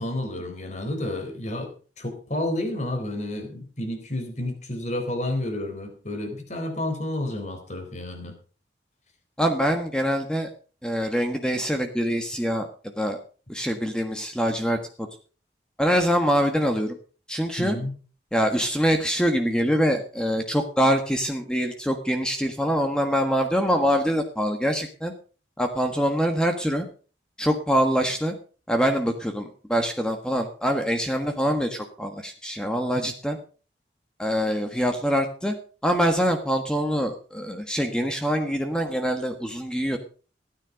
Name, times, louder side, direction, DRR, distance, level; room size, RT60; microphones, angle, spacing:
voice 1, 0.0-8.3 17.6-18.0 33.0-33.1, left 1 dB, 40° left, 6 dB, 3.9 m, -30 dB
voice 2, 9.4-10.5 10.8-13.2 13.5-15.1 15.8-17.0 17.3-17.8 18.3-25.1 25.6-26.9 27.4-28.3 28.7-33.4 34.2-35.5 35.8-40.0, equal, 5° left, 5 dB, 1.4 m, -24 dB
16.5 x 9.8 x 5.1 m, 0.39 s
head